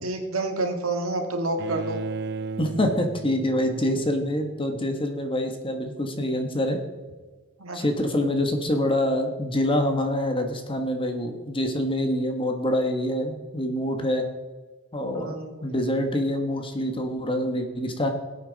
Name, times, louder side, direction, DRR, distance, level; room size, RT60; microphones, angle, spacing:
voice 1, 0.0-2.0 7.6-7.8 15.1-15.7, right 2 dB, 70° right, 3 dB, 1.9 m, -28 dB
Bowed string instrument, 1.6-4.6, right 3 dB, 50° right, 0.5 m, -35 dB
voice 2, 2.6-6.8 7.7-14.3 14.9-15.4 15.6-18.1, left 1 dB, 25° left, 5 dB, 1.3 m, -26 dB
20.5 x 8.5 x 4.0 m, 1.3 s
head